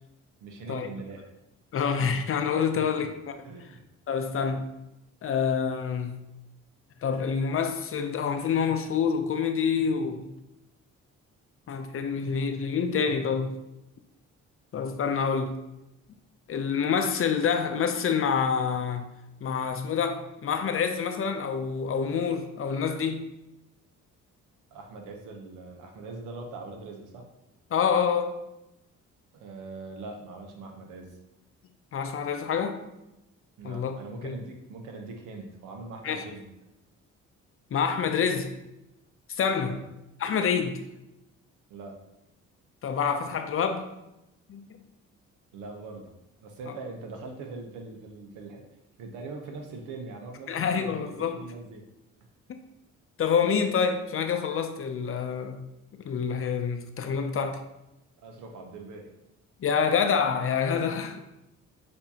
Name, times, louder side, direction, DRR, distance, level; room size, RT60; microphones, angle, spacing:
voice 1, 0.4-1.3 2.7-3.1 3.4-3.8 24.7-27.3 29.3-31.2 33.6-36.5 39.6-39.8 41.7-42.0 45.5-46.1 46.4-48.6 49.0-51.9 58.2-59.1, right 3 dB, 85° right, 0.9 m, -42 dB
voice 2, 1.7-3.3 4.1-4.7 5.2-6.2 7.0-10.3 11.7-13.6 14.7-15.5 16.5-19.1 19.4-23.2 27.7-28.4 31.9-32.8 33.6-34.0 34.2-34.3 36.0-36.2 37.7-38.5 39.3-39.8 40.2-40.8 42.8-43.9 44.5-44.7 50.5-51.4 53.2-55.6 56.0-57.6 59.6-61.2, left 6 dB, 45° left, 0.6 m, -27 dB
6.8 x 2.8 x 2.8 m
cardioid pair, 90°, 30 cm